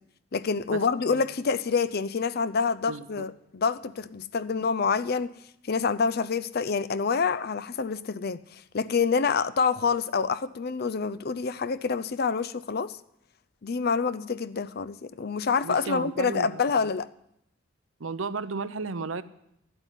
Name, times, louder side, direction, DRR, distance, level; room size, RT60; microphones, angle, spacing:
voice 1, 0.3-5.3 5.7-13.0 13.6-17.1, left 5 dB, 50° left, 0.5 m, -27 dB
voice 2, 2.9-3.2 15.6-16.6 18.0-19.2, right 4 dB, 80° right, 0.7 m, -34 dB
11.5 x 8.1 x 9.9 m
head